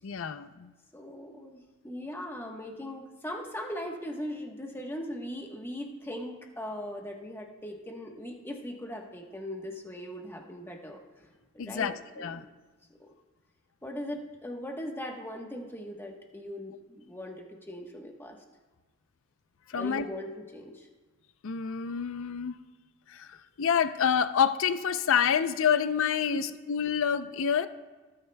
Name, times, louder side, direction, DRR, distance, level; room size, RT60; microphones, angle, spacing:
voice 1, 0.0-0.7 11.6-12.4 19.7-20.1 21.4-22.6 23.1-27.7, left 7 dB, 65° left, 12 dB, 0.5 m, -28 dB
voice 2, 0.9-11.3 11.5-12.4 13.0-13.1 13.8-18.4 19.7-20.9 26.3-26.4, left 1 dB, 10° left, 1 dB, 1.1 m, -39 dB
17.5 x 8.6 x 2.2 m, 1.3 s
head